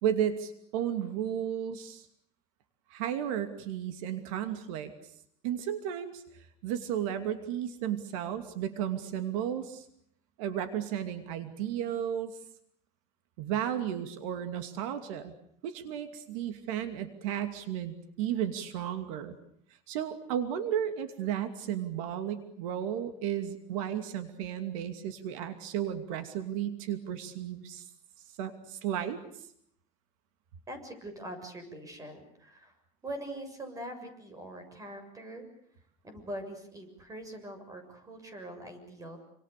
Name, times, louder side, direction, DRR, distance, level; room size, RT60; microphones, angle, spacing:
voice 1, 0.0-2.1 2.9-4.9 5.4-9.9 10.4-12.4 13.4-15.3 15.6-19.4 19.9-27.8 28.4-29.2, right 10 dB, 90° right, 9 dB, 2.7 m, -33 dB
voice 2, 30.7-32.7 33.0-35.4 36.0-39.2, right 1 dB, 20° right, 8 dB, 7.0 m, -43 dB
28.5 x 26.0 x 6.8 m, 0.69 s
cardioid pair, 145°, 17 cm